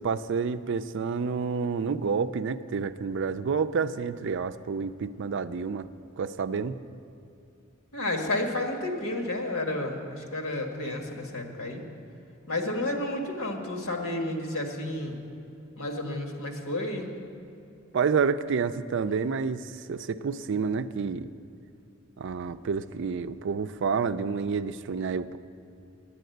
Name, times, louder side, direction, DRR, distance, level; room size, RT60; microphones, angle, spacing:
voice 1, 0.0-5.9 6.2-6.8 17.9-21.3 22.2-25.4, right 5 dB, 60° right, 12 dB, 0.4 m, -29 dB
voice 2, 7.9-11.8 12.5-15.2 15.8-17.1, left 1 dB, 90° left, 3 dB, 1.5 m, -31 dB
9.9 x 9.3 x 7.9 m, 2.8 s
head